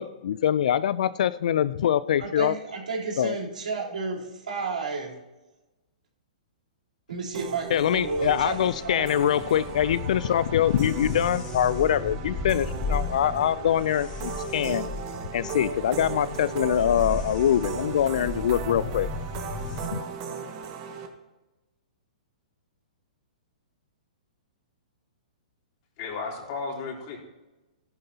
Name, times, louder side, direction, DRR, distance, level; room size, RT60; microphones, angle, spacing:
voice 1, 0.0-2.6 3.2-3.4 7.7-14.9 15.3-19.1 19.9-20.0, left 10 dB, 65° left, 18 dB, 0.4 m, -24 dB
voice 2, 2.2-5.1 7.1-9.1, right 4 dB, 85° right, -3 dB, 3.6 m, -32 dB
sound 1, 7.3-19.9, left 3 dB, 30° left, 2.2 m, -36 dB
sound 2, 7.3-21.1, right 5 dB, 45° right, 1.6 m, -37 dB
voice 3, 26.0-27.2, left 4 dB, 45° left, -1 dB, 3.3 m, -34 dB
14.0 x 11.0 x 2.8 m, 1.1 s
hypercardioid pair, 130°, 4 cm